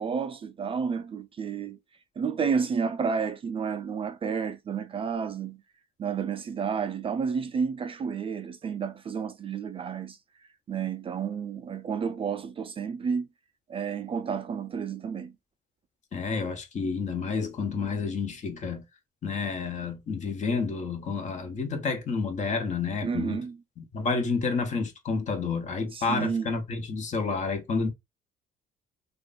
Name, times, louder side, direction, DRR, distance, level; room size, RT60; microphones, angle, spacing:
voice 1, 0.0-1.8 2.2-5.6 6.0-10.2 10.7-13.3 13.7-15.4 23.0-23.6 25.9-26.5, right 6 dB, 30° right, 0.4 m, -31 dB
voice 2, 16.1-18.8 19.2-23.4 23.8-27.9, left 4 dB, 45° left, 1.1 m, -30 dB
3.0 x 2.5 x 3.9 m
cardioid pair, 110°, 17 cm